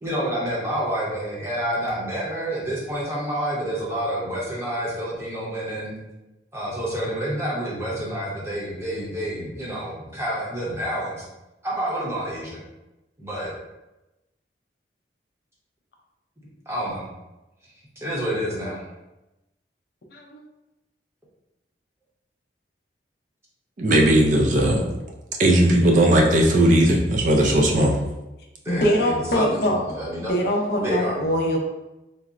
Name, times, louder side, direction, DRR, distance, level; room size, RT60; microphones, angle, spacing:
voice 1, 0.0-6.0 6.5-11.3 11.6-12.6 13.2-13.5 16.7-17.1 18.0-18.8 28.6-30.4 30.8-31.4, right 1 dB, 15° right, -5 dB, 0.7 m, -28 dB
voice 2, 20.1-20.4 28.7-29.8 30.2-31.6, equal, 55° left, 0 dB, 0.5 m, -23 dB
voice 3, 23.8-24.8 25.4-28.0, right 1 dB, 45° right, 0 dB, 0.4 m, -17 dB
3.9 x 2.0 x 2.4 m, 0.99 s
head